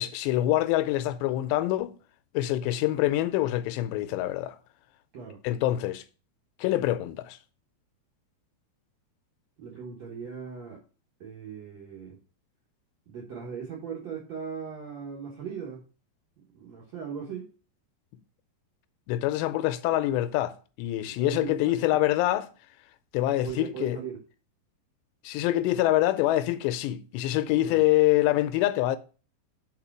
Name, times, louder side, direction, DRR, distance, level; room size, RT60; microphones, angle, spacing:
voice 1, 0.0-1.9 2.3-4.6 5.4-6.0 6.6-7.4 19.1-22.5 23.1-24.0 25.2-29.0, left 15 dB, 85° left, 2.7 m, -25 dB
voice 2, 9.6-10.8 11.2-12.2 13.1-15.8 16.5-17.5 21.1-22.0 23.3-24.2 27.6-27.8, right 6 dB, 65° right, 1.7 m, -39 dB
5.7 x 4.8 x 5.9 m
omnidirectional pair, 5.0 m